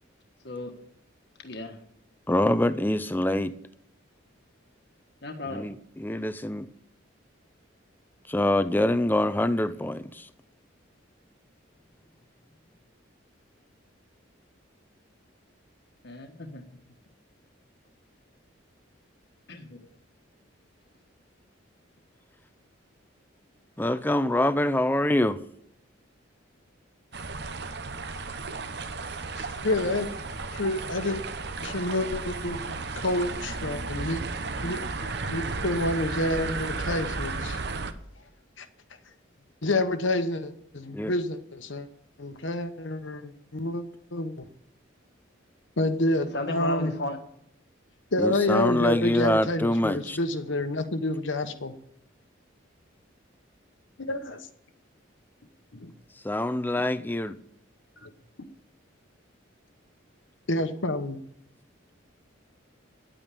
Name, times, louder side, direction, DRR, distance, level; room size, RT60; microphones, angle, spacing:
voice 1, 1.4-1.8 5.2-5.7 16.0-16.6 19.5-19.8 46.3-47.2, left 2 dB, 55° left, 1.4 m, -34 dB
voice 2, 2.3-3.5 5.4-6.7 8.3-10.3 23.8-25.4 40.9-41.1 48.2-50.2 56.2-57.4, left 1 dB, 10° left, 0.5 m, -25 dB
sound 1, 27.1-37.9, right 3 dB, 55° right, 1.0 m, -34 dB
voice 3, 29.4-30.1 30.5-31.2 31.6-34.2 34.6-37.6 38.6-38.7 39.6-41.9 42.2-43.8 44.1-44.4 45.8-46.9 48.1-51.7 54.0-54.4 55.7-55.9 58.0-58.1 60.5-61.2, left 1 dB, 70° left, 1.2 m, -28 dB
11.0 x 9.0 x 8.4 m
head